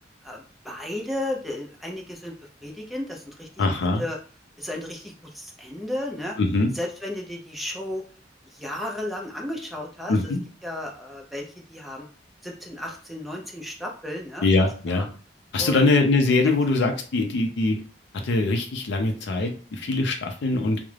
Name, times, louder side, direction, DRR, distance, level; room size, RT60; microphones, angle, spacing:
voice 1, 0.2-2.3 2.6-4.2 4.6-6.4 6.7-8.0 8.4-10.1 10.6-12.1 12.4-15.1 15.6-15.9 16.4-16.6, left 1 dB, ahead, -1 dB, 0.4 m, -34 dB
voice 2, 3.6-4.0 6.4-6.7 10.1-10.4 14.4-15.1 15.5-17.8 18.2-20.8, left 3 dB, 80° left, 4 dB, 0.4 m, -22 dB
2.3 x 2.0 x 3.1 m, 0.39 s
head